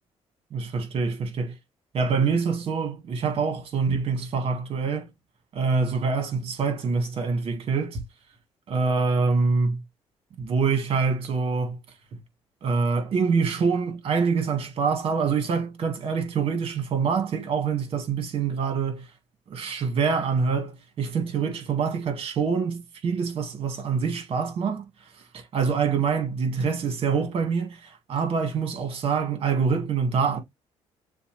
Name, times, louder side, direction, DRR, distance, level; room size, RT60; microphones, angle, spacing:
voice 1, 0.5-1.6 1.9-5.1 5.5-8.0 8.7-9.8 10.4-11.8 12.1-12.2 12.6-19.1 19.5-24.9 25.3-30.4, right 5 dB, 55° right, 1.8 m, -25 dB
6.9 x 2.4 x 3.2 m
cardioid pair, 100°, 12 cm